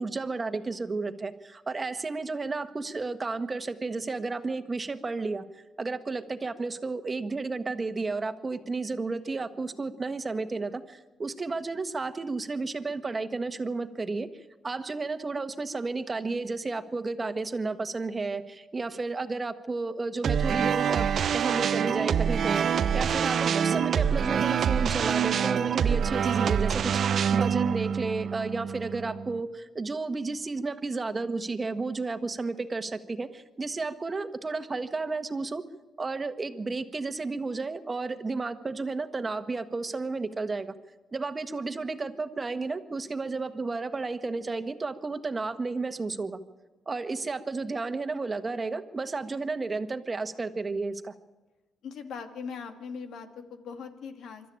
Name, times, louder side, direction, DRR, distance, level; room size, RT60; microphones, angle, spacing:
voice 1, 0.0-5.4 5.8-21.1 21.3-35.6 36.0-40.7 41.1-46.4 46.9-51.1, right 3 dB, 30° right, 9 dB, 1.4 m, -32 dB
sound 1, 20.2-29.4, right 8 dB, 55° right, 0.6 m, -26 dB
voice 2, 51.8-54.5, left 6 dB, 70° left, 6 dB, 2.4 m, -40 dB
25.5 x 12.5 x 8.8 m, 1.2 s
cardioid pair, 90°, 0 cm